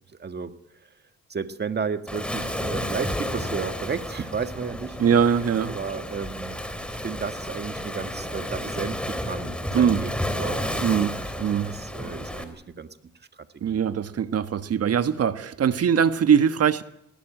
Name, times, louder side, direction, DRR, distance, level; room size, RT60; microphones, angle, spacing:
voice 1, 0.2-0.5 1.3-5.0 5.7-6.6 6.9-13.0 13.5-13.8, right 5 dB, 35° right, 1.7 m, -33 dB
Waves surf, 2.1-12.4, equal, 5° left, 3.4 m, -32 dB
voice 2, 5.0-5.8 9.7-10.0 10.8-11.8 13.6-16.8, right 7 dB, 55° right, 1.4 m, -22 dB
20.0 x 19.0 x 9.0 m
cardioid pair, 90°, 30 cm